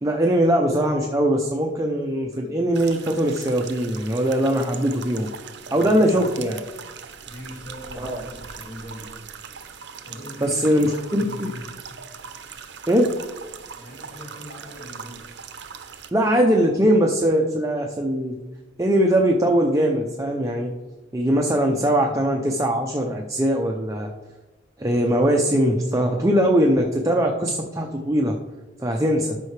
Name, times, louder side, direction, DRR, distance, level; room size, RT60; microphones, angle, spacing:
voice 1, 0.0-5.3 5.7-6.6 8.0-8.2 10.4-11.5 12.9-13.1 16.1-18.4 18.8-20.7 21.1-24.1 24.8-28.4 28.8-29.3, equal, 15° right, 2 dB, 0.5 m, -21 dB
sound 1, 2.7-16.1, right 6 dB, 60° right, 0.7 m, -40 dB
voice 2, 5.6-6.6 7.2-9.1 10.0-11.7 13.8-15.3 21.9-22.6 29.2-29.3, equal, 40° left, -6 dB, 2.3 m, -40 dB
12.5 x 5.7 x 3.2 m, 1.2 s
head